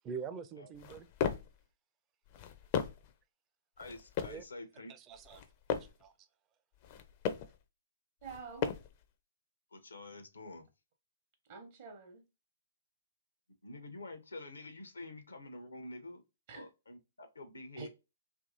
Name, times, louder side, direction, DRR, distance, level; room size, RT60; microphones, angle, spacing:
voice 1, 0.0-1.1 4.3-4.4 4.9-5.4 5.8-6.3, right 6 dB, 25° right, 0.4 m, -44 dB
sound 1, 0.7-1.6 2.2-3.1 3.8-4.5 5.2-6.0 6.7-7.6 8.2-9.0, left 7 dB, 40° left, 0.4 m, -37 dB
voice 2, 3.8-4.9 9.7-10.7 13.6-16.2 16.5-17.9, left 2 dB, 80° left, 0.6 m, -48 dB
voice 3, 8.2-8.7 11.5-12.2 16.5-16.7 17.8-17.9, right 5 dB, 50° right, 0.7 m, -47 dB
2.8 x 2.6 x 2.5 m
figure-of-eight pair, 125°, 0 cm